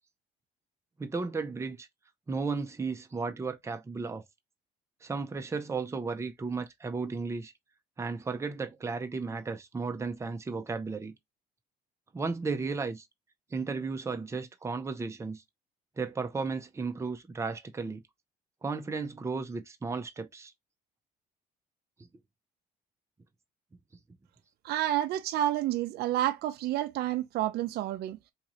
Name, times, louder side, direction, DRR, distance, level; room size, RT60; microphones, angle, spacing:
voice 1, 1.0-1.9 2.3-4.2 5.0-7.5 8.0-11.1 12.1-13.1 13.5-15.4 16.0-18.0 18.6-20.5, right 4 dB, 15° right, 0.6 m, -34 dB
voice 2, 24.6-28.2, right 13 dB, 70° right, 0.5 m, -29 dB
3.6 x 2.8 x 3.0 m
cardioid pair, 110°, 17 cm